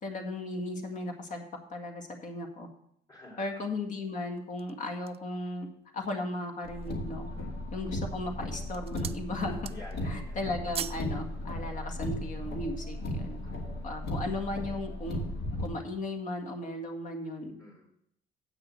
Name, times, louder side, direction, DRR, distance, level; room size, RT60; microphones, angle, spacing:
voice 1, 0.0-1.4 1.7-2.7 3.4-5.7 5.9-7.3 7.7-9.7 10.0-13.4 13.8-15.2 15.6-17.6, left 2 dB, 50° left, 4 dB, 1.9 m, -36 dB
voice 2, 3.1-3.6 7.3-7.7 9.7-10.3 13.4-13.9 17.6-17.8, left 1 dB, 25° left, -7 dB, 3.3 m, -51 dB
sound 1, 4.4-5.4 6.0-6.1 6.5-7.1 7.8-8.1 8.5-9.3 9.5-10.1 10.3-11.1 11.4-11.6, right 9 dB, 35° right, 0.4 m, -40 dB
Car, 6.6-15.7, left 1 dB, 70° left, 2.2 m, -36 dB
8.2 x 6.3 x 7.6 m, 0.73 s
cardioid pair, 110°, 17 cm